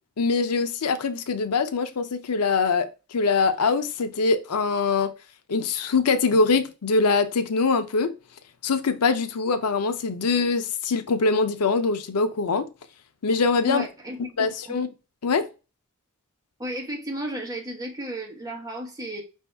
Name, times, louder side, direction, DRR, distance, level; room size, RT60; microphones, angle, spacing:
voice 1, 0.2-5.1 5.5-8.1 8.6-12.7 13.2-13.8 14.4-14.9 15.2-15.5, left 4 dB, 90° left, 0.6 m, -23 dB
voice 2, 13.6-14.2 14.7-14.8 16.6-19.2, equal, 15° right, 1.3 m, -33 dB
5.3 x 2.7 x 3.4 m
head